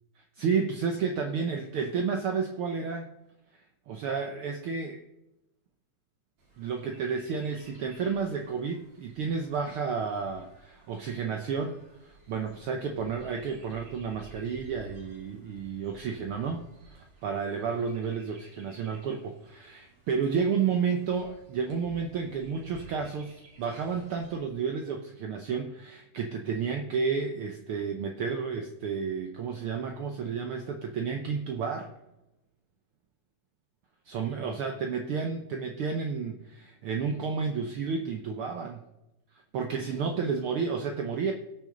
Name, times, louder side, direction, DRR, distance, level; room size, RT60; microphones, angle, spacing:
voice 1, 0.2-3.1 3.9-5.0 6.6-16.6 16.9-31.9 34.1-38.9 39.5-41.3, right 5 dB, 90° right, 4 dB, 1.2 m, -31 dB
Chirp tweet, 6.4-24.4, right 2 dB, 60° right, 4.3 m, -54 dB
18.0 x 6.3 x 3.8 m, 0.93 s
omnidirectional pair, 3.5 m